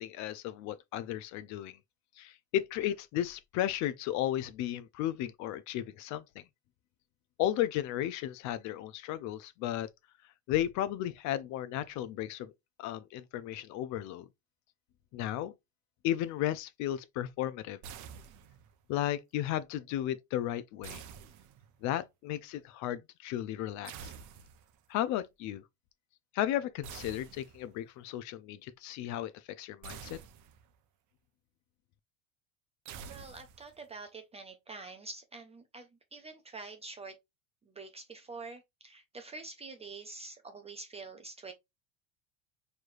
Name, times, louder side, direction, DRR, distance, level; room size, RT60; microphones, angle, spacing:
voice 1, 0.0-1.8 2.2-6.2 7.4-9.9 10.5-12.5 12.8-14.3 15.1-15.5 16.0-17.8 18.9-21.0 21.8-24.1 24.9-25.6 26.3-29.3 29.6-30.2, left 12 dB, 45° left, 0.5 m, -34 dB
sound 1, 17.8-18.8 20.8-21.9 23.8-24.8 26.8-27.8 29.8-30.8 32.9-33.9, right 7 dB, 45° right, 0.7 m, -48 dB
voice 2, 33.0-37.2 37.7-41.5, right 3 dB, 15° right, 0.3 m, -46 dB
4.5 x 3.2 x 2.4 m
supercardioid pair, 110°, 43 cm